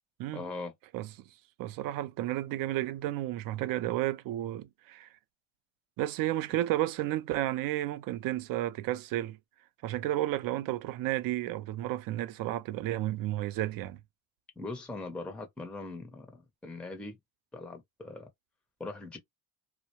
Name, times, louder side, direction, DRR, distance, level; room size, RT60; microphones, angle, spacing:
voice 1, 0.3-0.7 14.6-17.2 17.5-18.3 18.8-19.2, left 3 dB, 5° left, 0.6 m, -41 dB
voice 2, 1.6-5.1 6.0-9.4 9.8-14.0, right 14 dB, 55° right, 0.5 m, -32 dB
2.3 x 2.0 x 2.9 m
supercardioid pair, 90°, 41 cm